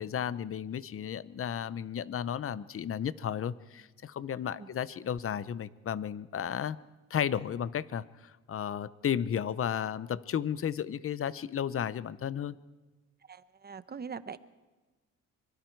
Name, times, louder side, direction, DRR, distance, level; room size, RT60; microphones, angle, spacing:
voice 1, 0.0-6.8 7.1-12.6, left 9 dB, 45° left, 17 dB, 0.8 m, -33 dB
voice 2, 13.3-14.4, right 6 dB, 30° right, 14 dB, 0.9 m, -42 dB
24.5 x 23.0 x 4.7 m, 1.2 s
cardioid pair, 110°, 32 cm